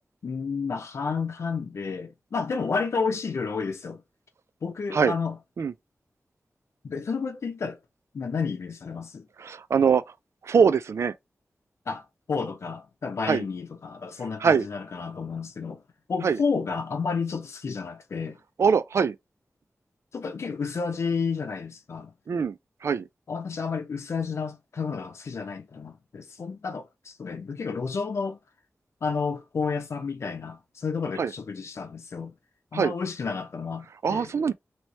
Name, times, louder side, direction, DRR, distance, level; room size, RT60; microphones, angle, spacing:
voice 1, 0.2-4.0 4.6-5.4 6.8-7.8 8.1-9.3 11.9-15.8 16.1-18.4 20.1-22.1 23.3-28.4 29.0-32.3 32.7-34.3, left 5 dB, 75° left, 0.7 m, -31 dB
voice 2, 9.4-10.0 10.4-11.1 13.3-13.4 14.4-14.7 16.2-16.4 18.6-19.1 22.3-22.6 22.8-23.0 31.2-31.3 32.7-32.9 34.0-34.5, right 6 dB, 80° right, 0.4 m, -22 dB
3.2 x 3.0 x 4.2 m
wide cardioid pair, 110°, 5 cm